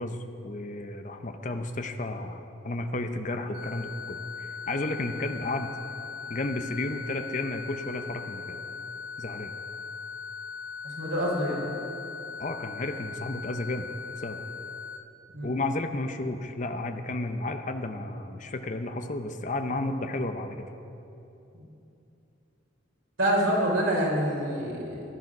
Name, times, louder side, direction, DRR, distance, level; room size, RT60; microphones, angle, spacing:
voice 1, 0.0-5.7 6.3-8.6 9.2-9.5 12.4-13.9 14.2-14.4 15.4-20.7, left 2 dB, 40° left, 7 dB, 0.7 m, -32 dB
sound 1, 3.5-15.0, left 6 dB, 25° right, 1.6 m, -39 dB
voice 2, 11.0-11.6 15.3-15.5 23.2-25.0, right 1 dB, 90° right, -3 dB, 3.7 m, -26 dB
15.0 x 11.0 x 6.0 m, 2.9 s
head